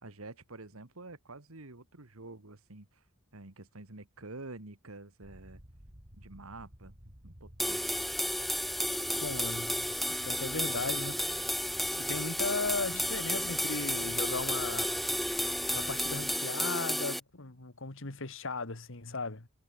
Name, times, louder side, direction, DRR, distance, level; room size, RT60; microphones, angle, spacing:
voice 1, 0.0-3.0 3.3-5.6 6.1-7.8, right 2 dB, 80° right, 2.2 m, -48 dB
sound 1, 5.2-16.4, equal, 35° right, 4.5 m, -53 dB
sound 2, 7.6-17.2, equal, ahead, 0.8 m, -32 dB
voice 2, 9.2-9.9 10.2-11.2 12.0-15.0 15.7-19.5, left 3 dB, 65° left, 2.0 m, -37 dB
head